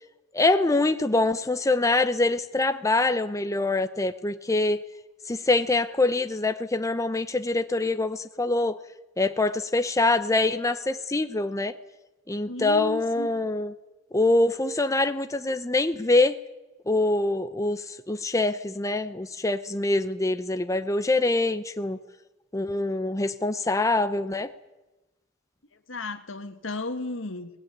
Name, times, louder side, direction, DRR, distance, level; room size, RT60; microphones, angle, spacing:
voice 1, 0.3-4.8 5.3-8.8 9.2-11.7 12.3-13.7 14.1-16.4 16.9-22.0 22.5-24.5, left 2 dB, 15° left, 9 dB, 0.7 m, -24 dB
voice 2, 12.5-13.3 25.9-27.5, left 2 dB, 70° left, 8 dB, 2.0 m, -34 dB
22.5 x 19.0 x 9.4 m, 1.1 s
head